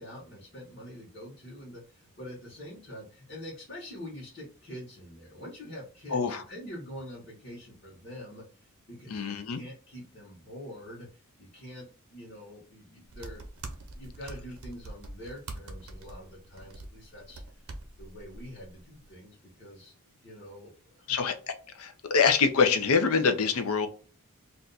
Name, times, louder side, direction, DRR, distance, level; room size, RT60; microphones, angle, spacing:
voice 1, 0.0-13.4 13.8-17.7 18.0-19.9 20.2-21.2, equal, 45° left, -7 dB, 1.1 m, -45 dB
voice 2, 6.1-6.4 9.1-9.6 21.1-21.3 21.8-23.9, left 5 dB, 70° left, 7 dB, 0.5 m, -25 dB
sound 1, 13.0-19.1, right 2 dB, 70° right, 0.7 m, -44 dB
2.5 x 2.3 x 3.9 m, 0.39 s
head